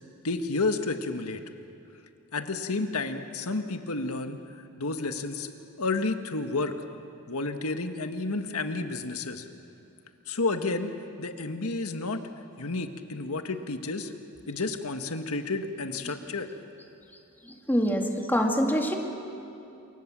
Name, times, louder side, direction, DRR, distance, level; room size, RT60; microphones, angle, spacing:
voice 1, 0.2-1.4 2.3-4.4 4.8-5.5 5.8-6.7 7.3-9.5 10.3-12.2 12.6-14.1 14.5-16.5, left 3 dB, 80° left, 7 dB, 1.6 m, -31 dB
voice 2, 17.7-19.0, equal, 10° left, 1 dB, 2.5 m, -24 dB
27.5 x 24.0 x 7.5 m, 2.8 s
head